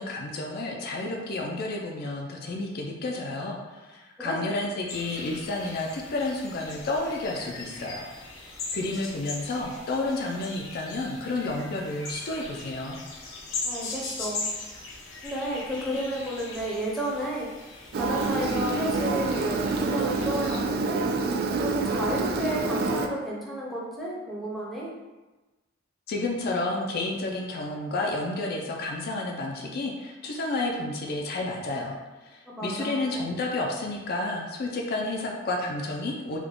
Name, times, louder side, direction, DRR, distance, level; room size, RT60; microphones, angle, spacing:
voice 1, 0.0-8.1 8.7-13.0 26.1-31.9 32.2-36.4, left 2 dB, 50° left, 0 dB, 0.4 m, -31 dB
sound 1, 4.9-20.6, left 3 dB, 90° left, 0.8 m, -39 dB
voice 2, 13.6-14.5 15.2-17.5 17.9-21.0 21.6-24.9 32.5-33.0, equal, ahead, -6 dB, 0.7 m, -32 dB
Engine, 17.9-23.1, right 3 dB, 50° right, 0.3 m, -27 dB
3.5 x 2.2 x 3.6 m, 1.1 s
head